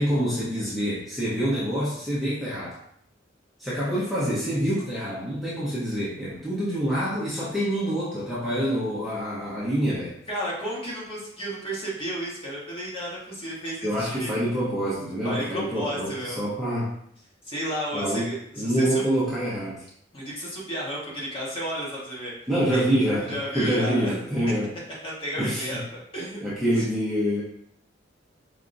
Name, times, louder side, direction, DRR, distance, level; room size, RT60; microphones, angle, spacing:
voice 1, 0.0-2.8 3.6-10.1 13.8-16.9 17.9-19.8 22.5-24.7 25.4-25.8 26.4-27.4, equal, ahead, -10 dB, 0.9 m, -26 dB
voice 2, 10.3-14.3 15.2-16.5 17.4-19.0 20.1-22.3 22.7-22.8 23.2-24.1 25.0-26.4 26.8-26.9, equal, 30° left, -7 dB, 1.4 m, -32 dB
4.8 x 2.9 x 2.6 m, 0.67 s
head